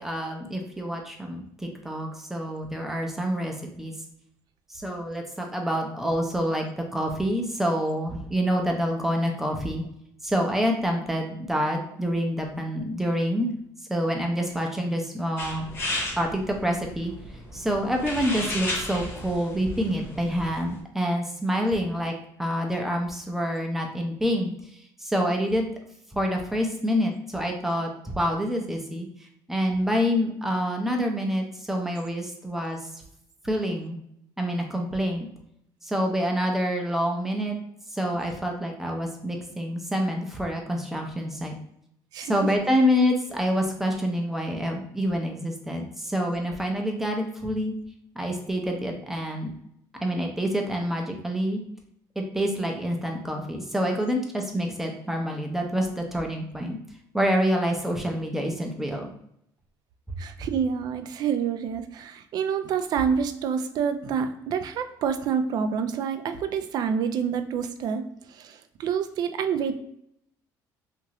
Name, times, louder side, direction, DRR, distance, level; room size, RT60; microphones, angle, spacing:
voice 1, 0.0-3.9 4.7-9.8 10.2-13.5 13.9-15.7 16.2-17.1 17.5-22.1 22.4-24.5 25.0-25.6 26.1-29.1 29.5-32.9 33.4-34.0 34.4-35.3 35.8-37.6 37.9-41.5 42.2-47.7 48.2-49.5 50.0-51.6 52.2-56.8 57.1-59.1, equal, 5° right, 2 dB, 0.5 m, -27 dB
sound 1, 15.4-20.8, left 1 dB, 30° left, 0.8 m, -34 dB
voice 2, 42.1-42.5 60.2-68.0 68.3-69.8, right 7 dB, 55° right, 8 dB, 0.4 m, -27 dB
3.0 x 2.5 x 2.8 m, 0.74 s
cardioid pair, 125°, 8 cm